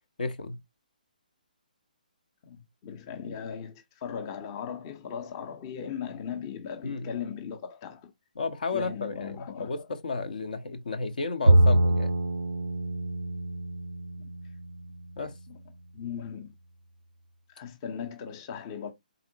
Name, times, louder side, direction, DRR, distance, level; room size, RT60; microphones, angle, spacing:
voice 1, 0.2-0.6 6.8-7.1 8.4-12.1 15.2-15.3, left 3 dB, 65° left, 0.8 m, -33 dB
voice 2, 2.4-8.1 8.7-9.7 14.2-14.3 15.5-15.6 15.9-16.5 17.5-18.9, left 7 dB, 30° left, 0.7 m, -38 dB
Bowed string instrument, 11.5-14.9, right 1 dB, 85° right, 0.4 m, -24 dB
4.1 x 3.9 x 2.7 m
figure-of-eight pair, 135°, 5 cm